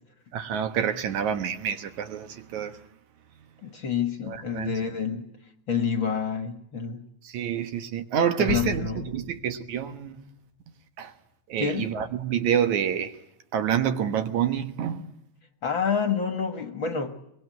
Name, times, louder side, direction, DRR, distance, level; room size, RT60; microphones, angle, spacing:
voice 1, 0.3-2.8 4.2-4.7 7.2-10.2 11.0-11.1 11.5-13.2 13.5-15.1, right 8 dB, 70° right, 2.6 m, -28 dB
voice 2, 3.6-5.3 5.7-7.1 8.4-9.1 11.6-12.0 15.6-17.2, left 6 dB, 45° left, 2.1 m, -28 dB
sound 1, 8.5-10.3 10.6-10.7, left 7 dB, 65° left, 2.1 m, -37 dB
23.5 x 21.5 x 9.4 m
omnidirectional pair, 3.6 m